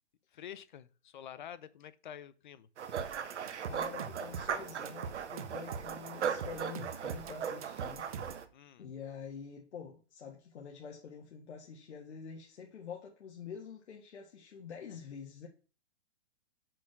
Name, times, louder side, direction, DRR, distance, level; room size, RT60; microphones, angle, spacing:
voice 1, 0.3-2.7 8.5-8.9, left 9 dB, 45° left, 0.7 m, -48 dB
sound 1, 2.8-8.5, right 8 dB, 90° right, 1.3 m, -38 dB
sound 2, 3.0-8.5, right 6 dB, 35° right, 0.6 m, -43 dB
voice 2, 3.7-8.1 8.8-15.5, left 6 dB, 80° left, 1.9 m, -47 dB
6.4 x 6.1 x 5.9 m
hypercardioid pair, 175°, 33 cm